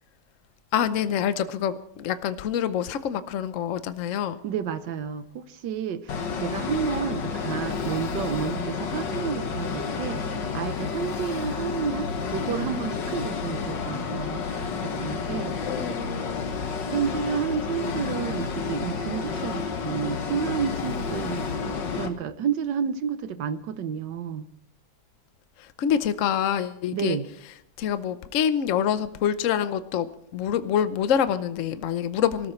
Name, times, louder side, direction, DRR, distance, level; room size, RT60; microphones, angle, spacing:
voice 1, 0.7-4.4 15.0-15.2 15.7-16.5 25.6-27.2 27.8-30.1 30.3-32.5, left 9 dB, 55° left, 12 dB, 1.0 m, -26 dB
voice 2, 4.4-16.0 16.9-24.5 26.9-27.3, right 7 dB, 90° right, 12 dB, 1.6 m, -31 dB
sound 1, 6.1-22.1, left 5 dB, 85° left, 1.9 m, -30 dB
25.0 x 13.5 x 3.2 m, 0.72 s
omnidirectional pair, 1.9 m